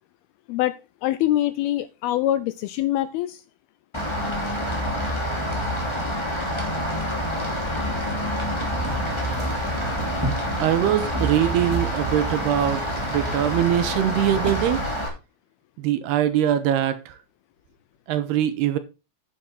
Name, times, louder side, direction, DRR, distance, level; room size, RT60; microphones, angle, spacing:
voice 1, 1.0-3.4, left 13 dB, 80° left, 2.3 m, -24 dB
Rain, 3.9-15.1, equal, 10° left, 2.3 m, -27 dB
sound 1, 8.8-15.1, right 3 dB, 10° right, 1.3 m, -34 dB
voice 2, 10.6-14.8 15.8-17.2 18.1-18.8, right 11 dB, 80° right, 3.0 m, -22 dB
9.9 x 8.5 x 3.8 m
omnidirectional pair, 4.9 m